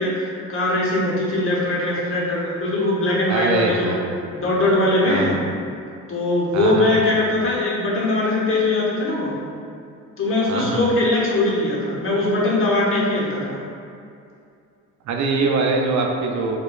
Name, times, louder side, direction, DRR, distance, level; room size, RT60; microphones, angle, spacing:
voice 1, 0.0-3.9 4.3-5.4 6.1-9.4 10.2-13.6, left 2 dB, 45° left, -4 dB, 0.9 m, -21 dB
voice 2, 3.3-4.2 5.1-5.4 6.5-7.2 10.5-10.8 15.0-16.6, right 3 dB, 70° right, 1 dB, 0.5 m, -23 dB
4.7 x 2.2 x 2.3 m, 2.4 s
cardioid pair, 90°, 30 cm